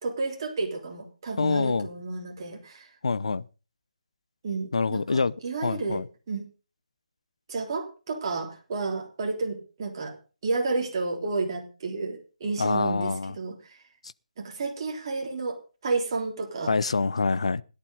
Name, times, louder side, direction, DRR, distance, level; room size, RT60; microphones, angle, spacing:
voice 1, 0.0-2.9 4.4-6.0 6.3-6.5 7.5-10.2 10.4-13.8 14.4-16.7, right 3 dB, 35° right, 3.7 m, -31 dB
voice 2, 1.4-1.9 3.0-3.4 4.7-5.3 5.6-6.1 12.6-13.3 16.7-17.6, left 4 dB, 55° left, 0.7 m, -25 dB
17.0 x 11.5 x 3.8 m
figure-of-eight pair, 145°, 4 cm